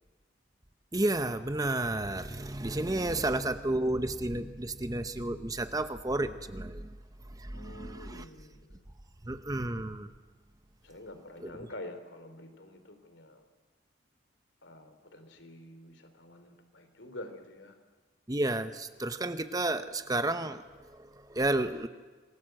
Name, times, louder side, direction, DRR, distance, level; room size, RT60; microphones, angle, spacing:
voice 1, 0.9-7.0 7.3-8.3 9.2-10.1 11.4-11.7 18.3-21.9, right 2 dB, 20° right, 10 dB, 0.9 m, -32 dB
voice 2, 7.5-8.8 10.8-13.4 14.6-17.7, left 1 dB, 75° left, 8 dB, 3.4 m, -47 dB
27.0 x 20.0 x 7.8 m, 1.3 s
head